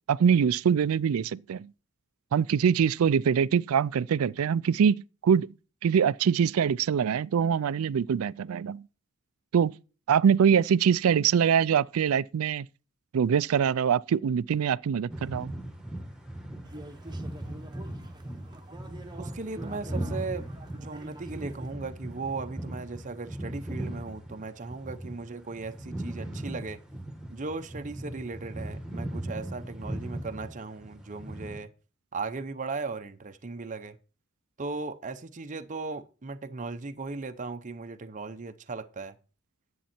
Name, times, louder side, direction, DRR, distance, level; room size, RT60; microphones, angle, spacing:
voice 1, 0.1-1.7 2.3-5.5 5.8-8.9 9.5-9.7 10.1-12.7 13.1-15.5, right 7 dB, 85° right, 0.4 m, -24 dB
sound 1, 15.1-31.6, right 1 dB, 5° right, 1.6 m, -38 dB
sound 2, 16.6-21.7, right 1 dB, 20° right, 1.0 m, -46 dB
voice 2, 19.2-20.5 20.7-26.8 27.3-31.7 32.1-34.0 34.6-39.1, right 3 dB, 35° right, 0.6 m, -37 dB
10.5 x 8.1 x 4.4 m
head